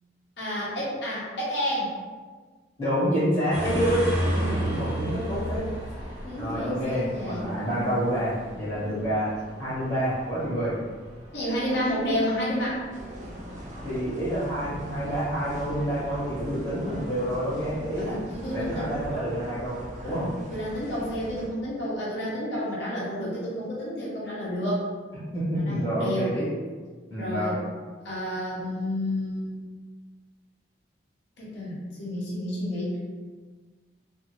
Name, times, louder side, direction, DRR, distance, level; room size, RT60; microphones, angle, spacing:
voice 1, 0.4-1.9 6.2-8.0 8.7-9.0 11.3-12.8 18.0-18.9 20.0-24.8 25.5-26.4 27.2-27.6 28.0-29.6 31.4-33.0, equal, 70° left, -7 dB, 0.8 m, -30 dB
voice 2, 2.8-5.7 6.3-9.3 9.6-10.8 13.8-18.2 18.5-20.3 25.3-26.5 27.1-27.6, equal, 30° left, -11 dB, 1.0 m, -28 dB
sound 1, 3.5-19.2, equal, 65° right, 1.1 m, -36 dB
sound 2, 12.9-21.5, equal, 40° right, 0.3 m, -41 dB
2.5 x 2.4 x 2.9 m, 1.4 s
head